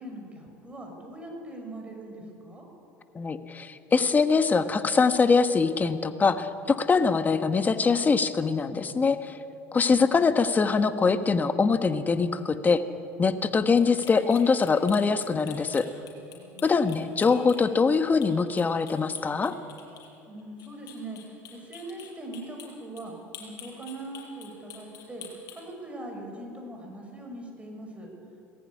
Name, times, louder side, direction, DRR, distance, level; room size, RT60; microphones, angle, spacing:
voice 1, 0.0-2.7 9.7-10.5 16.3-16.9 20.3-21.2 21.5-23.1 23.4-25.3 25.5-28.1, right 1 dB, 15° right, 1 dB, 6.1 m, -41 dB
voice 2, 3.1-9.3 9.7-12.8 13.2-15.9 16.6-19.5, left 4 dB, 25° left, 9 dB, 1.3 m, -23 dB
sound 1, 13.8-18.0 18.2-18.3 18.6-20.1 20.4-22.7 23.0-23.1 23.3-25.6, left 10 dB, 55° left, 6.9 m, -45 dB
20.0 x 15.0 x 9.8 m, 2.8 s
supercardioid pair, 100°, 7 cm